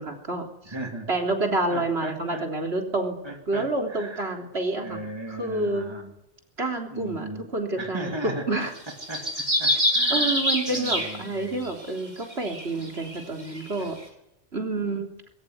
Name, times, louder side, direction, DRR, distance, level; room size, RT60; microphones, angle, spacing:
voice 1, 0.0-0.7 1.1-3.2 3.5-5.0 5.3-5.9 6.6-8.7 10.1-14.0 14.5-15.1, right 2 dB, 70° right, 3 dB, 3.8 m, -28 dB
voice 2, 0.7-1.1 1.7-2.5 3.2-4.3 4.8-6.1 6.9-7.4 7.8-8.7 9.1-10.4 10.7-11.6 13.8-13.9, right 1 dB, 25° right, 4 dB, 2.9 m, -37 dB
sound 1, 8.8-11.7 12.3-13.8, equal, 40° right, 4.3 m, -26 dB
21.0 x 19.5 x 9.6 m, 0.81 s
omnidirectional pair, 1.1 m